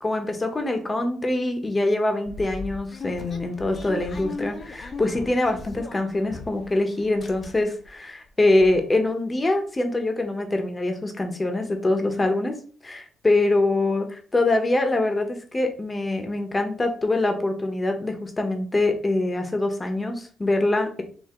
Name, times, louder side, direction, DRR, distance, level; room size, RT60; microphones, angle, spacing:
voice 1, 0.0-12.6 12.8-14.1 14.3-21.0, left 2 dB, 20° left, 5 dB, 1.0 m, -24 dB
sound 1, 2.3-6.7 7.0-7.9 8.3-8.4 8.5-8.8, left 3 dB, 45° left, 0.7 m, -37 dB
4.6 x 2.7 x 3.7 m, 0.42 s
cardioid pair, 90°, 0 cm